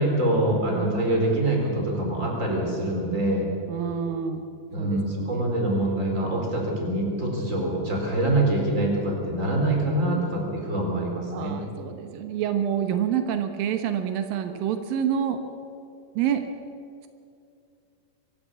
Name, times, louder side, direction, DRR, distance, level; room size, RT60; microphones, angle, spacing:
voice 1, 0.0-3.5 4.7-11.5, right 1 dB, 20° right, 0 dB, 4.3 m, -25 dB
voice 2, 3.7-4.5 4.8-5.4 10.1-10.3 11.3-15.4 16.2-16.5, right 9 dB, 85° right, 7 dB, 2.9 m, -28 dB
23.5 x 14.0 x 8.3 m, 2.4 s
omnidirectional pair, 4.0 m